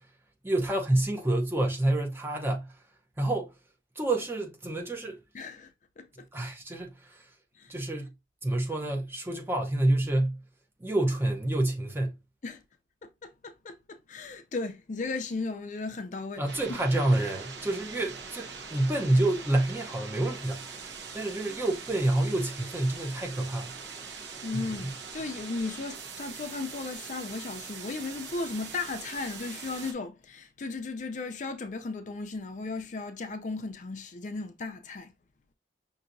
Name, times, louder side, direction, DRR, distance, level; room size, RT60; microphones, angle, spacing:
voice 1, 0.4-2.7 3.2-3.5 4.0-5.2 6.3-7.3 7.7-8.1 8.4-10.4 10.8-12.1 16.4-20.8 21.1-23.8 24.8-24.9, right 1 dB, 10° right, 0.7 m, -28 dB
voice 2, 5.3-6.3 7.6-7.7 12.4-12.6 13.0-16.4 16.7-16.8 24.4-35.1, left 3 dB, 45° left, 0.4 m, -36 dB
sound 1, 16.5-29.9, right 5 dB, 75° right, 0.9 m, -42 dB
5.6 x 2.7 x 2.6 m
head